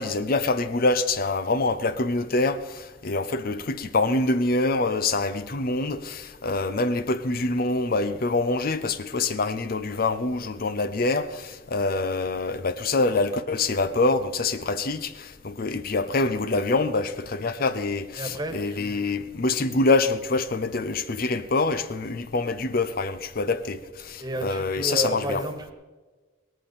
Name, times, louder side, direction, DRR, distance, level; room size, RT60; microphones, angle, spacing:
voice 1, 0.0-25.4, left 3 dB, 50° left, 0.7 m, -25 dB
voice 2, 18.2-19.1 24.2-25.7, right 1 dB, 20° right, 1.6 m, -31 dB
18.0 x 14.0 x 4.2 m
head